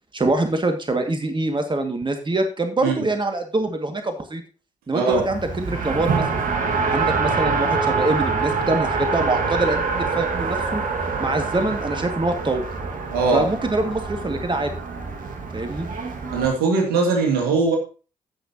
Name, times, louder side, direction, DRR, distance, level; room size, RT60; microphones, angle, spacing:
voice 1, 0.1-4.4 4.9-6.4 6.9-10.8 11.2-12.7 13.3-14.7 15.5-15.9, right 2 dB, 30° right, 2.0 m, -24 dB
voice 2, 4.9-5.3 13.1-13.5 16.3-17.8, right 4 dB, 80° right, 2.4 m, -20 dB
Race car auto racing, 5.1-16.5, right 4 dB, 60° right, 1.8 m, -25 dB
15.0 x 6.1 x 2.9 m
hypercardioid pair, 40°, 16 cm